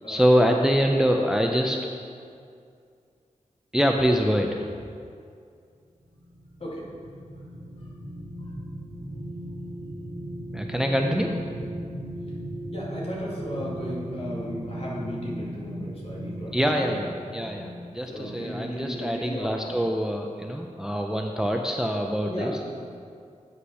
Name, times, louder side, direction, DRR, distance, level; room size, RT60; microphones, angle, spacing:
voice 1, 0.1-1.8 3.7-4.7 10.5-11.8 16.5-22.6, equal, 5° right, 2 dB, 0.5 m, -25 dB
voice 2, 0.9-1.2 6.6-6.8 12.7-17.0 18.1-19.8 22.3-22.7, equal, 50° left, -5 dB, 2.2 m, -35 dB
sound 1, 6.1-19.0 19.5-19.7, equal, 20° right, 2.3 m, -37 dB
8.0 x 5.7 x 6.2 m, 2.3 s
wide cardioid pair, 110°, 13 cm